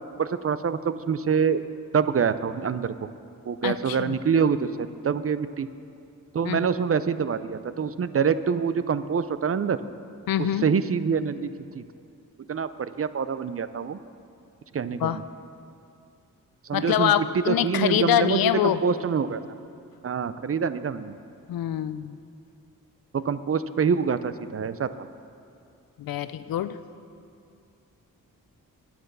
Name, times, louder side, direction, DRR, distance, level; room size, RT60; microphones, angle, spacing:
voice 1, 0.0-1.6 1.9-3.1 3.5-5.7 6.3-9.8 10.4-11.8 12.5-14.0 14.7-15.2 16.6-19.4 20.0-21.1 23.1-25.1, right 6 dB, 40° right, 13 dB, 0.5 m, -26 dB
voice 2, 3.6-4.2 6.4-6.7 10.3-10.7 15.0-15.2 16.7-18.8 21.5-22.2 26.0-26.8, left 11 dB, 80° left, 13 dB, 0.5 m, -25 dB
9.5 x 9.5 x 6.7 m, 2.4 s
cardioid pair, 60°, 35 cm